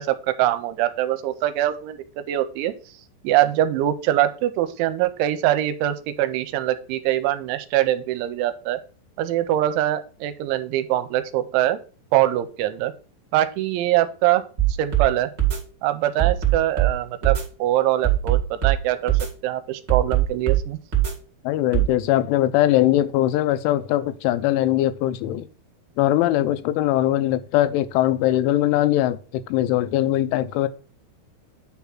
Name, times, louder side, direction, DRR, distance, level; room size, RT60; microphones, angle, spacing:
voice 1, 0.0-2.0 2.3-2.7 3.2-8.8 9.2-11.8 12.1-12.9 13.3-14.4 14.8-15.3 15.8-19.1 19.4-20.8, right 13 dB, 85° right, 2.9 m, -23 dB
sound 1, 14.6-15.1 15.4-15.6 16.2-16.9 17.2-17.4 18.0-18.8 19.1-19.3 19.9-20.6 20.9-21.1 21.7-21.9, right 13 dB, 35° right, 1.8 m, -20 dB
voice 2, 21.5-25.4 26.0-30.7, left 14 dB, 85° left, 3.1 m, -21 dB
9.6 x 3.5 x 5.8 m
omnidirectional pair, 5.5 m